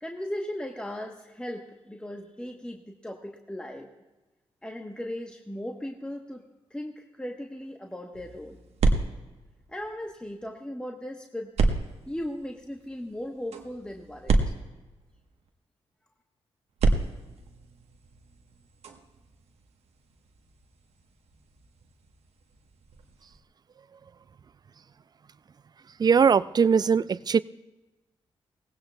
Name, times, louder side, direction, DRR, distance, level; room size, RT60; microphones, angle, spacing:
voice 1, 0.0-3.9 4.6-6.4 6.7-8.6 9.7-11.5 12.1-14.5, left 1 dB, 10° left, 2 dB, 1.1 m, -37 dB
sound 1, 8.1-10.4 11.6-15.5 16.7-23.4, right 3 dB, 85° right, 1.1 m, -31 dB
voice 2, 26.0-27.4, right 6 dB, 40° right, 18 dB, 0.3 m, -20 dB
18.0 x 16.0 x 2.3 m, 1.1 s
cardioid pair, 55°, 11 cm